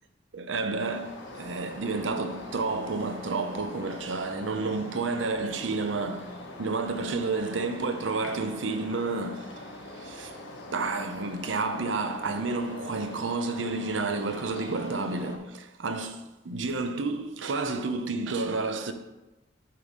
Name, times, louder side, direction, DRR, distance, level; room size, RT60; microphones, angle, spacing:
voice 1, 0.3-10.3 10.7-18.9, right 3 dB, 75° right, 0.7 m, -30 dB
sound 1, 0.8-15.4, left 1 dB, 75° left, 1.4 m, -43 dB
8.6 x 3.6 x 6.3 m
head